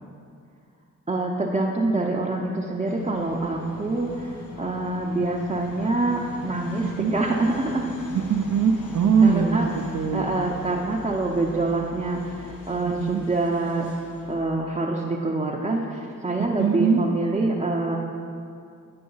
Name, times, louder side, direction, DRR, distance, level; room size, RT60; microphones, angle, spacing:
voice 1, 1.1-7.9 9.2-9.7 10.1-13.9 14.3-18.0, right 2 dB, 20° right, -4 dB, 0.7 m, -26 dB
sound 1, 2.8-14.4, left 3 dB, 85° left, 1.0 m, -41 dB
voice 2, 6.8-7.1 8.1-10.3 12.8-13.2 16.4-17.0, right 6 dB, 60° right, 2 dB, 0.6 m, -22 dB
9.5 x 5.0 x 4.0 m, 2.4 s
cardioid pair, 65°, 33 cm